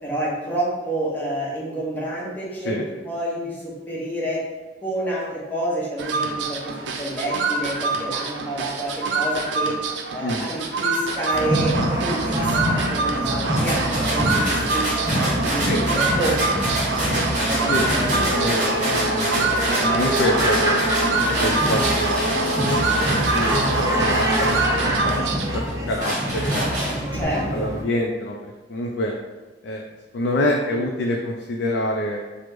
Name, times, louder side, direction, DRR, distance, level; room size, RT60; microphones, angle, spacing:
voice 1, 0.0-4.4 4.8-9.8 10.1-16.4 17.0-17.1 17.4-18.3 19.8-20.0 27.1-27.7, right 1 dB, 10° left, -6 dB, 0.8 m, -29 dB
sound 1, 6.0-25.7, right 3 dB, 75° right, 0.4 m, -25 dB
sound 2, 11.3-27.8, equal, 20° right, 0.5 m, -26 dB
sound 3, 13.6-25.2 25.7-27.2, right 1 dB, 45° right, 1.0 m, -28 dB
voice 2, 17.7-20.8 21.3-23.1 23.3-24.6 25.0-27.0 27.5-29.1 29.6-29.8 30.1-32.2, left 1 dB, 65° left, 0 dB, 0.3 m, -27 dB
2.9 x 2.0 x 3.4 m, 1.2 s
head